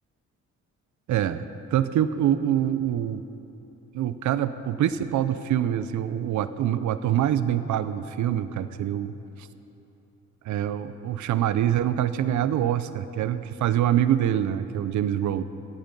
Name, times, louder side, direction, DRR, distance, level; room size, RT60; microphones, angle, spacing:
voice 1, 1.1-1.4 1.7-3.2 3.9-9.1 10.4-15.4, right 11 dB, 70° right, 13 dB, 0.7 m, -25 dB
18.0 x 14.5 x 5.4 m, 3.0 s
cardioid pair, 90°, 30 cm